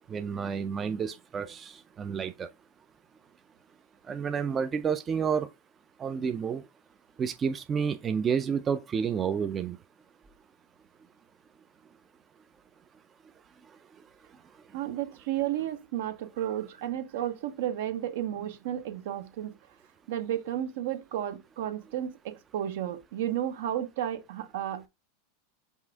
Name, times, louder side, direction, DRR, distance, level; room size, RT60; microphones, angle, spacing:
voice 1, 0.1-2.5 4.1-5.5 6.0-6.6 7.2-9.8, right 6 dB, 25° right, 0.4 m, -30 dB
voice 2, 14.7-19.5 20.1-24.9, right 11 dB, 70° right, 0.7 m, -32 dB
5.5 x 2.5 x 3.4 m
hypercardioid pair, 100°, 0 cm